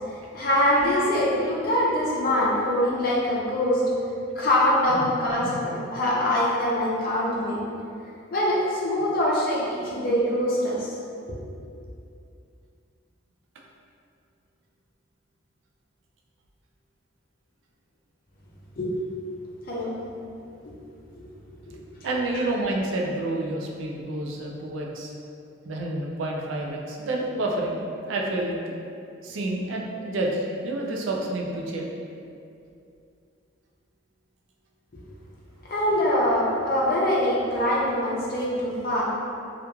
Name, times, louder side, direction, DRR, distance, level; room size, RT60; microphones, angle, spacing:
voice 1, 0.1-3.8 4.4-7.7 8.3-10.9 11.3-11.4 18.8-18.9 19.7-19.9 20.6-20.7 21.7-21.8 35.7-39.0, left 1 dB, 45° left, -5 dB, 0.5 m, -24 dB
voice 2, 22.0-25.1 25.6-27.8 28.1-28.6 29.2-31.9, right 2 dB, 80° right, -1 dB, 0.4 m, -29 dB
2.9 x 2.4 x 2.2 m, 2.5 s
head